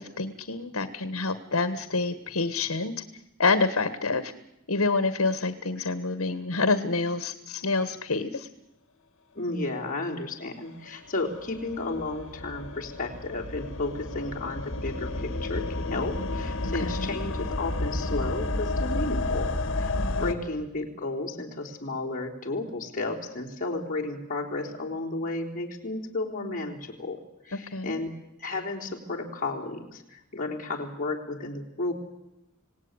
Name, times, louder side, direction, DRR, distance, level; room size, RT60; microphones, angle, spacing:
voice 1, 0.0-2.9 3.4-4.3 4.7-8.5 15.9-16.3 16.8-17.2 20.0-20.1 27.5-27.9, left 3 dB, 80° left, 12 dB, 1.5 m, -27 dB
voice 2, 9.4-28.1 28.4-31.9, left 2 dB, 40° left, -1 dB, 3.6 m, -33 dB
sound 1, 10.6-20.3, left 2 dB, 65° left, 2.1 m, -31 dB
26.5 x 18.0 x 9.7 m, 0.93 s
head